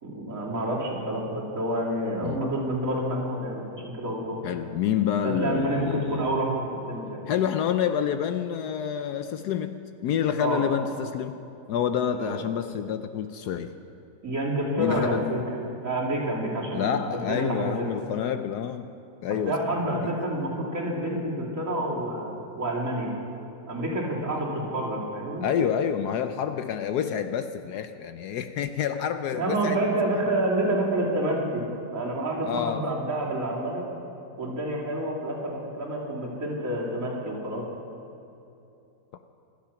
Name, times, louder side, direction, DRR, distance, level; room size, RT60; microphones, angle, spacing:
voice 1, 0.0-4.4 5.2-6.6 6.9-7.2 10.4-10.6 12.2-12.3 14.2-15.4 15.8-17.7 19.5-23.1 23.7-25.4 29.3-31.6 31.9-33.8 34.4-37.6, right 1 dB, 45° right, -5 dB, 3.6 m, -28 dB
voice 2, 4.4-6.3 7.3-13.7 14.8-15.3 16.7-18.9 19.2-20.1 25.4-29.8 30.2-30.3 32.5-32.9, left 8 dB, 70° left, 9 dB, 1.1 m, -28 dB
26.5 x 9.0 x 5.8 m, 2.7 s
omnidirectional pair, 1.9 m